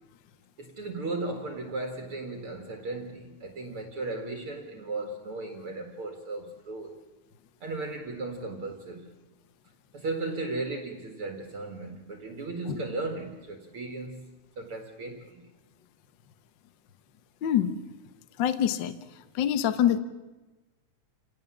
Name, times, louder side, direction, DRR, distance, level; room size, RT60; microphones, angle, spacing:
voice 1, 0.6-6.9 7.6-9.1 9.9-14.3 14.6-15.4, right 2 dB, 50° right, 2.5 m, -36 dB
voice 2, 17.4-17.8 18.4-20.0, left 10 dB, 65° left, 1.1 m, -26 dB
28.5 x 17.5 x 7.2 m
omnidirectional pair, 3.4 m